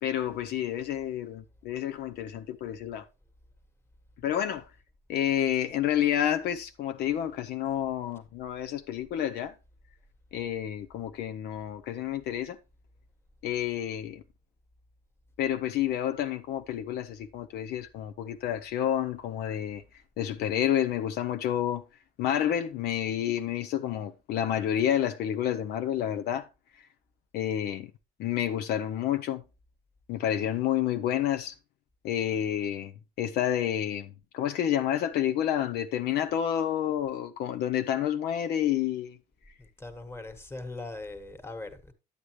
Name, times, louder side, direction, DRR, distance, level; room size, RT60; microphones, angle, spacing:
voice 1, 0.0-3.0 4.2-4.7 5.1-9.5 10.3-12.6 13.4-14.2 15.4-19.8 20.2-21.8 22.2-26.5 27.3-27.9 28.2-29.4 30.1-31.5 32.0-32.9 33.2-39.2, left 10 dB, 75° left, 0.6 m, -29 dB
voice 2, 39.6-41.9, left 2 dB, 15° left, 1.5 m, -40 dB
10.0 x 8.1 x 3.1 m
cardioid pair, 110°, 17 cm